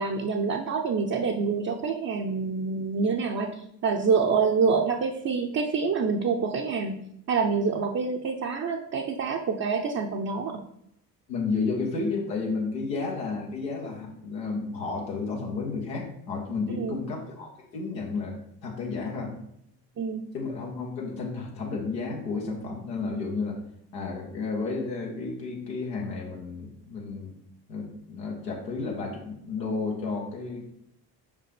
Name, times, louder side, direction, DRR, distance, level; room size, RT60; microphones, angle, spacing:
voice 1, 0.0-7.0 7.3-10.6 16.7-17.0 20.0-20.2, right 5 dB, 35° right, 1 dB, 0.7 m, -26 dB
voice 2, 11.3-19.4 20.3-23.6 23.9-27.3 27.7-30.7, left 4 dB, 85° left, -2 dB, 1.3 m, -32 dB
5.7 x 5.1 x 3.3 m, 0.74 s
figure-of-eight pair, 45°, 49 cm